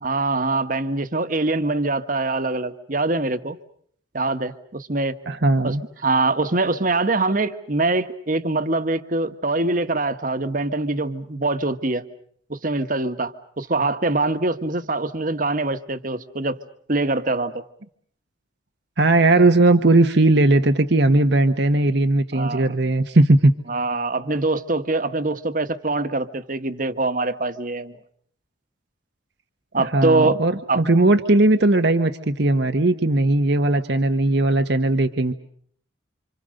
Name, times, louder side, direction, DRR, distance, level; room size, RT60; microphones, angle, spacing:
voice 1, 0.0-3.6 4.1-5.1 5.6-5.7 6.0-12.0 12.5-16.6 16.9-17.6 22.3-22.7 23.7-28.0 29.7-30.4 30.7-30.8, right 2 dB, 45° right, 10 dB, 1.5 m, -23 dB
voice 2, 5.3-5.8 19.0-23.5 29.8-35.3, right 2 dB, 60° right, 8 dB, 1.1 m, -18 dB
28.5 x 27.0 x 6.6 m, 0.62 s
head